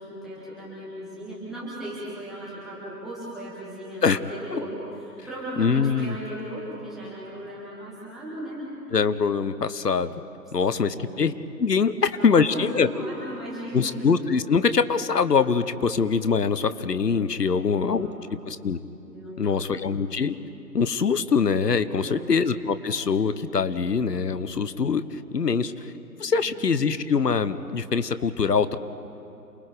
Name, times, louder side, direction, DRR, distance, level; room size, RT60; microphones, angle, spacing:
voice 1, 0.0-8.7 10.6-11.0 12.1-14.0 17.4-18.2 19.1-19.8 21.9-22.3 26.2-26.7, right 1 dB, ahead, -10 dB, 0.9 m, -37 dB
voice 2, 5.6-6.2 8.9-10.1 10.5-12.9 13.7-18.1 18.4-18.8 19.4-20.4 20.7-25.9 26.2-28.8, left 5 dB, 70° left, 13 dB, 1.1 m, -23 dB
28.0 x 21.5 x 5.1 m, 2.9 s
figure-of-eight pair, 145°, 50 cm